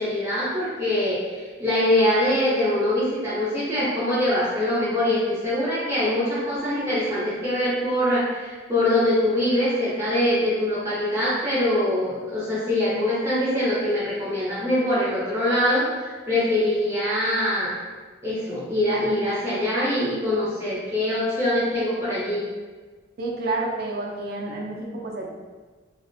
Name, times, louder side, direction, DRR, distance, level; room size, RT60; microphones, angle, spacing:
voice 1, 0.0-17.7 18.2-22.4, left 1 dB, 15° right, -10 dB, 0.6 m, -23 dB
voice 2, 23.2-25.3, right 2 dB, 50° right, -2 dB, 0.4 m, -29 dB
2.4 x 2.0 x 2.5 m, 1.4 s
head